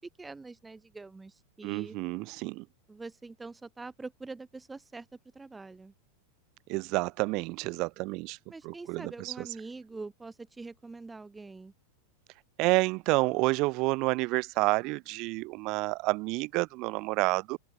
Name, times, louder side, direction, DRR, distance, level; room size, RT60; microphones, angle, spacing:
voice 1, 0.0-2.0 2.9-5.9 8.5-11.7, right 3 dB, 10° right, 1.8 m, -44 dB
voice 2, 1.6-2.6 6.7-8.4 8.6-9.5 12.6-17.6, right 24 dB, 40° right, 0.3 m, -29 dB
open air
figure-of-eight pair, 90°, 0 cm